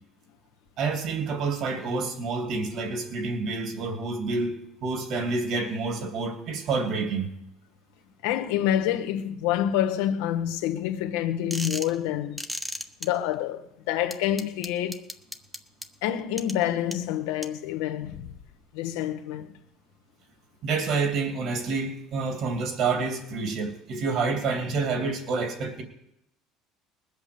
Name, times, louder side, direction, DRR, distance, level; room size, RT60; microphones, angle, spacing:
voice 1, 0.8-7.3 20.6-25.8, right 4 dB, 55° right, 2.8 m, -28 dB
voice 2, 8.2-12.4 13.0-15.1 16.0-18.3 18.7-19.6, left 11 dB, 85° left, 1.1 m, -27 dB
sound 1, 11.5-11.9 12.4-13.1 14.1-15.9 16.4-16.5 16.9-17.0 17.4-17.5, equal, 5° right, 0.9 m, -33 dB
20.0 x 8.2 x 6.9 m
cardioid pair, 130°, 0 cm